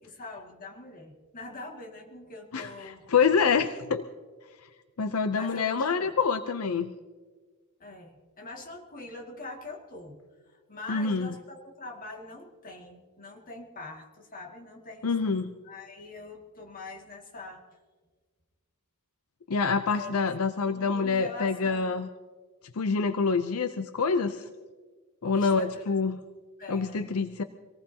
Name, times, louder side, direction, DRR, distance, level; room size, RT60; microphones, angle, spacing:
voice 1, 0.0-3.0 5.4-6.1 7.8-10.2 10.5-17.6 19.9-20.1 20.6-22.0 25.2-25.9 26.6-27.0, left 3 dB, 40° left, 1 dB, 2.2 m, -43 dB
voice 2, 2.5-4.0 5.0-6.9 10.9-11.3 15.0-15.5 19.5-22.1 22.8-24.5 25.2-26.2 26.7-27.4, left 5 dB, 75° left, 9 dB, 0.6 m, -26 dB
25.5 x 18.5 x 2.9 m, 1.4 s
head